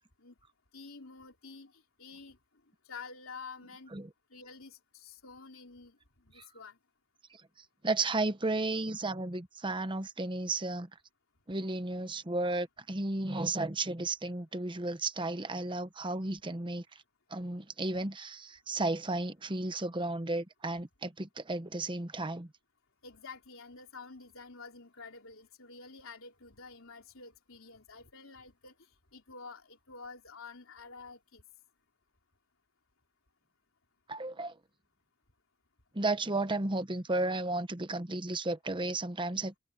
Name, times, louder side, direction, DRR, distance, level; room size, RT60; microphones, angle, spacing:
voice 1, 0.7-1.7 2.0-2.4 2.9-3.9 4.3-6.0 6.2-6.8 23.0-28.7 29.1-31.4, left 4 dB, 70° left, 3.8 m, -49 dB
voice 2, 7.8-10.9 11.5-17.0 17.3-22.5 34.1-34.6 35.9-39.6, right 2 dB, 25° right, 1.0 m, -33 dB
head